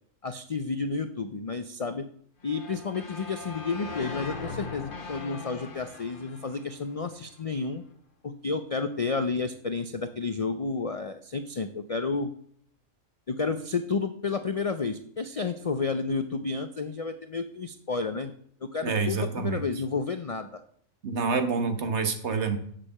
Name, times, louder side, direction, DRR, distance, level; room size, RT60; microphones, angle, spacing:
voice 1, 0.2-2.1 2.4-7.8 8.2-12.3 13.3-18.3 18.6-20.6, left 4 dB, 55° left, 9 dB, 0.3 m, -31 dB
sound 1, 2.5-7.5, left 4 dB, 40° left, 1.2 m, -40 dB
voice 2, 18.8-19.6 21.0-22.6, right 4 dB, 55° right, 8 dB, 1.4 m, -27 dB
7.6 x 6.6 x 7.3 m, 0.64 s
omnidirectional pair, 1.4 m